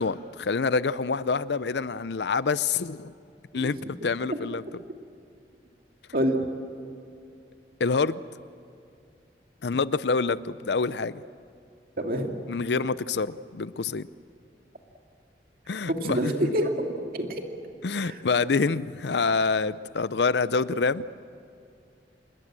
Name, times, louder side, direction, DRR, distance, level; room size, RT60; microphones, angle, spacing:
voice 1, 0.0-3.1 3.5-4.6 7.8-8.2 9.6-11.2 12.5-14.1 15.7-16.3 17.8-21.1, left 4 dB, 75° left, 17 dB, 0.6 m, -26 dB
voice 2, 3.5-3.9 6.1-6.4 12.0-12.3 15.9-17.4 18.0-18.2, equal, 55° right, 3 dB, 2.4 m, -27 dB
27.5 x 21.5 x 7.6 m, 2.4 s
head